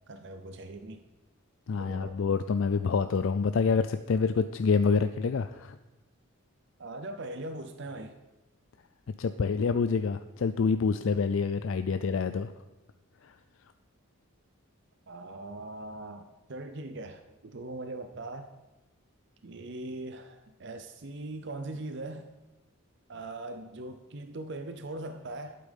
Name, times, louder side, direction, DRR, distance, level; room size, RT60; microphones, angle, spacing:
voice 1, 0.1-1.0 1.7-2.2 6.8-8.2 11.9-12.0 15.1-18.5 19.4-22.3 23.1-25.6, right 2 dB, 55° right, 8 dB, 0.7 m, -40 dB
voice 2, 1.7-5.7 9.2-12.5, left 5 dB, 65° left, 10 dB, 0.4 m, -27 dB
12.0 x 8.6 x 5.3 m, 1.1 s
head